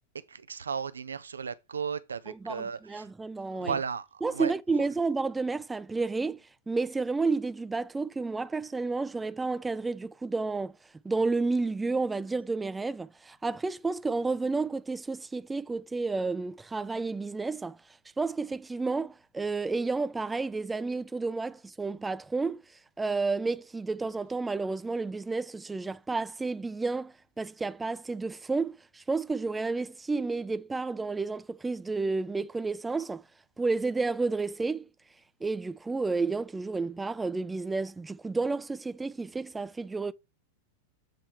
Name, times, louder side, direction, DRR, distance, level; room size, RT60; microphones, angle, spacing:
voice 1, 0.3-3.1 3.5-4.5, right 6 dB, 70° right, 0.4 m, -35 dB
voice 2, 2.3-3.8 4.2-10.8 11.0-17.8 18.2-22.6 23.0-33.2 33.6-34.9 35.4-40.1, right 3 dB, 10° right, 0.4 m, -31 dB
7.6 x 3.4 x 4.5 m
figure-of-eight pair, 90°, 0 cm